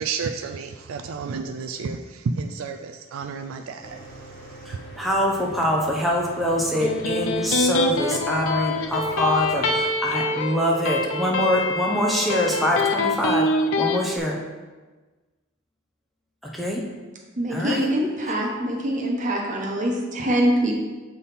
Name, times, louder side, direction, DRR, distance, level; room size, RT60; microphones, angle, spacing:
voice 1, 0.0-4.8, right 5 dB, 75° right, 6 dB, 0.4 m, -31 dB
Mechanical fan, 3.8-9.8, right 1 dB, 45° left, 1.3 m, -42 dB
voice 2, 4.7-13.5 13.8-14.4 16.5-16.8 17.5-17.8, equal, ahead, -2 dB, 0.6 m, -24 dB
Electric guitar, 6.6-14.0, left 3 dB, 65° left, 0.5 m, -25 dB
voice 3, 17.4-20.8, right 1 dB, 35° right, -1 dB, 1.1 m, -24 dB
7.2 x 3.6 x 4.1 m, 1.3 s
head